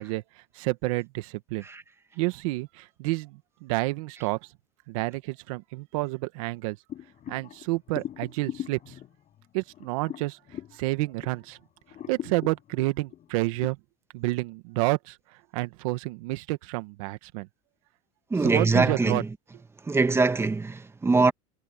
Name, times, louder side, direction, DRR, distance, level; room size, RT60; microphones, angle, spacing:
voice 1, 0.0-1.6 2.1-4.4 4.9-6.8 7.3-9.0 9.5-11.6 12.1-13.8 14.1-17.5 18.4-19.2, right 21 dB, 75° right, 1.6 m, -30 dB
sound 1, 6.9-11.5 11.9-13.7, left 11 dB, 45° left, 7.8 m, -40 dB
voice 2, 18.3-19.3 19.8-21.3, right 3 dB, 15° right, 1.9 m, -23 dB
supercardioid pair, 100°, 18 cm